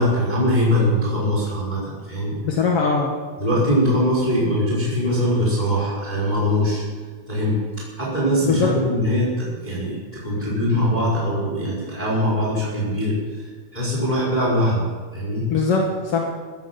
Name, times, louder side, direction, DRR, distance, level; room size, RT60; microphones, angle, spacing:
voice 1, 0.0-2.4 3.4-6.8 7.3-7.6 8.0-14.8 15.1-15.5, equal, 10° left, -5 dB, 4.6 m, -22 dB
voice 2, 2.4-3.1 8.5-8.7 15.5-16.2, left 4 dB, 50° left, -1 dB, 1.8 m, -20 dB
15.5 x 15.0 x 6.0 m, 1.5 s
omnidirectional pair, 4.9 m